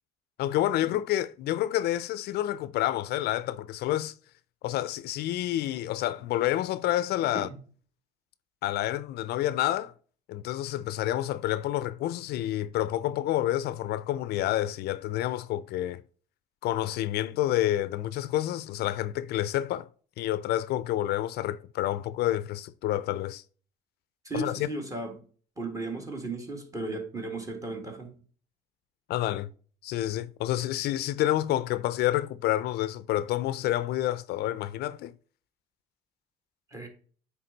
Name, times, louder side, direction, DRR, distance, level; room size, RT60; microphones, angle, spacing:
voice 1, 0.4-4.1 4.6-7.5 8.6-9.9 10.3-16.0 16.6-19.9 20.2-23.4 24.3-24.7 29.1-29.5 29.8-35.1, left 13 dB, 70° left, 0.4 m, -29 dB
voice 2, 24.3-25.1 25.6-28.1 36.7-36.9, right 2 dB, 20° right, 1.8 m, -35 dB
8.9 x 3.5 x 3.8 m
cardioid pair, 110°, 17 cm